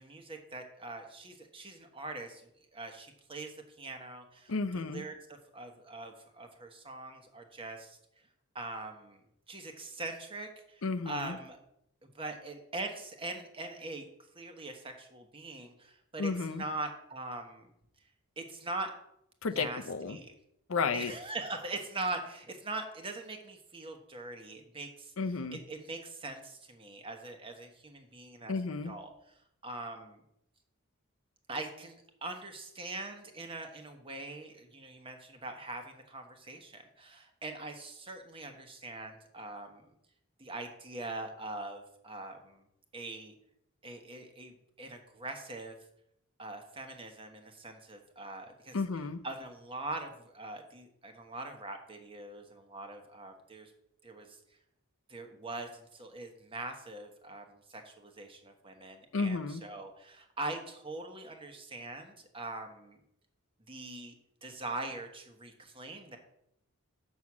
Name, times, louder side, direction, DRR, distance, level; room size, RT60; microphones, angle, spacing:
voice 1, 0.0-2.4 2.7-8.0 8.5-9.2 9.5-11.6 12.1-14.1 14.3-17.7 18.4-18.9 19.5-20.3 20.9-25.1 25.5-28.5 28.8-29.1 29.6-30.2 31.5-39.8 40.4-42.6 42.9-43.3 43.8-45.7 46.4-48.8 49.2-53.7 54.0-54.3 55.1-63.0 63.7-64.1 64.4-66.2, right 2 dB, 25° right, 5 dB, 1.2 m, -42 dB
voice 2, 4.5-5.0 10.8-11.4 16.2-16.6 19.4-20.2 20.7-21.1 25.2-25.6 28.5-28.9 48.7-49.2 59.1-59.6, left 4 dB, 75° left, 9 dB, 0.7 m, -32 dB
6.2 x 6.2 x 7.2 m, 0.76 s
head